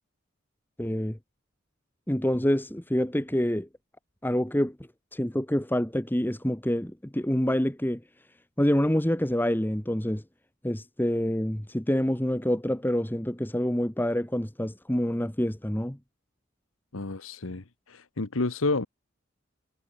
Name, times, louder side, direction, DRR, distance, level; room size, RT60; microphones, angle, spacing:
voice 1, 0.8-1.2 2.1-3.7 4.2-4.7 5.1-8.0 8.6-10.2 10.6-16.0, equal, 10° left, 1.3 m, -27 dB
voice 2, 16.9-18.9, left 3 dB, 80° left, 1.2 m, -30 dB
head